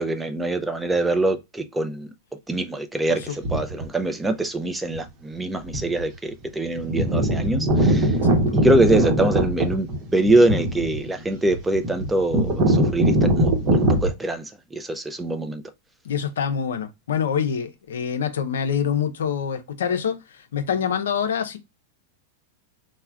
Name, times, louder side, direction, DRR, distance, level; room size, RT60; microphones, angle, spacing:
voice 1, 0.0-2.1 2.5-8.2 8.5-15.6, right 2 dB, 10° right, 0.4 m, -24 dB
sound 1, 3.4-3.8 4.9-5.0 5.7-6.0 6.3-6.4 6.7-14.1, right 1 dB, 40° right, 0.8 m, -21 dB
voice 2, 16.0-21.6, left 7 dB, 80° left, 0.5 m, -26 dB
3.2 x 2.1 x 2.3 m
hypercardioid pair, 110°, 0 cm